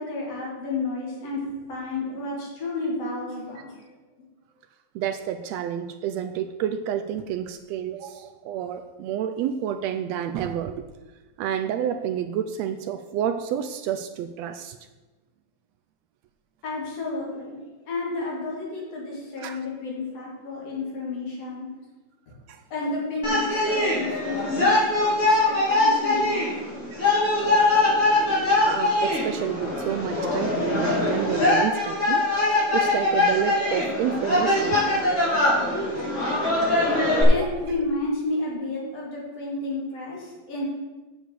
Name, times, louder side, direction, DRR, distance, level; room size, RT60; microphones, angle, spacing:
voice 1, 0.0-1.4 1.7-3.7 16.6-17.6 17.9-21.7 22.7-26.8 37.3-40.7, left 2 dB, 55° left, -3 dB, 3.9 m, -31 dB
voice 2, 4.9-10.9 11.4-14.8 19.4-19.6 22.5-22.6 28.6-32.2 32.7-34.8 37.3-37.7, right 9 dB, 80° right, 8 dB, 1.6 m, -29 dB
sound 1, 23.2-37.2, left 2 dB, 30° left, 4.3 m, -22 dB
8.3 x 6.9 x 7.7 m, 1.2 s
omnidirectional pair, 3.3 m